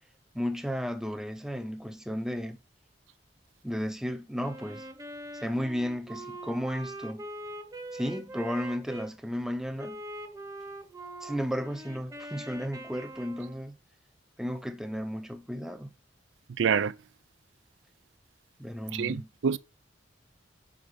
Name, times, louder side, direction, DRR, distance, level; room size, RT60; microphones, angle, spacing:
voice 1, 0.3-2.6 3.6-4.9 5.4-7.2 7.9-10.0 11.2-13.7 14.4-15.9 18.6-19.3, equal, 5° right, 0.6 m, -33 dB
Wind instrument woodwind instrument, 4.4-9.1 9.8-13.7, right 1 dB, 20° right, 0.9 m, -42 dB
voice 2, 16.6-16.9 18.9-19.6, right 6 dB, 80° right, 0.4 m, -26 dB
5.1 x 4.9 x 5.4 m
head